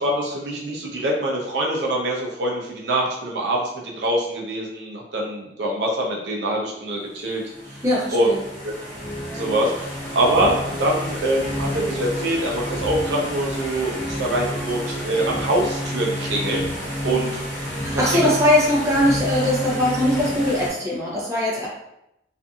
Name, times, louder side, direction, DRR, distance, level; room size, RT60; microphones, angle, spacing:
voice 1, 0.0-7.8 8.1-8.3 9.3-16.7 17.0-17.4 17.9-18.2, right 1 dB, 80° right, -2 dB, 0.6 m, -24 dB
sound 1, 7.3-20.7, left 1 dB, 10° left, 0.9 m, -30 dB
voice 2, 7.8-8.4 17.8-21.7, left 1 dB, 15° right, -5 dB, 0.7 m, -21 dB
2.6 x 2.5 x 2.4 m, 0.82 s
head